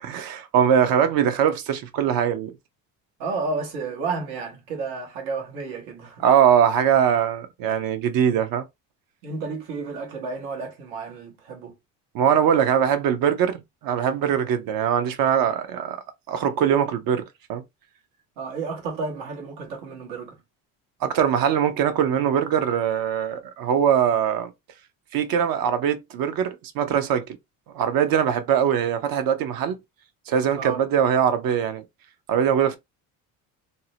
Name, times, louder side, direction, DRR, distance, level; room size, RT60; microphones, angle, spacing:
voice 1, 0.0-2.5 6.2-8.6 12.1-17.2 17.5-17.6 21.0-24.5 25.1-27.3 27.7-29.8 30.3-31.8 32.3-32.8, right 8 dB, 65° right, 0.7 m, -22 dB
voice 2, 3.2-6.2 9.2-11.7 18.4-20.4 30.5-30.8, right 4 dB, 85° right, 1.2 m, -31 dB
2.7 x 2.1 x 2.7 m
supercardioid pair, 90°, 37 cm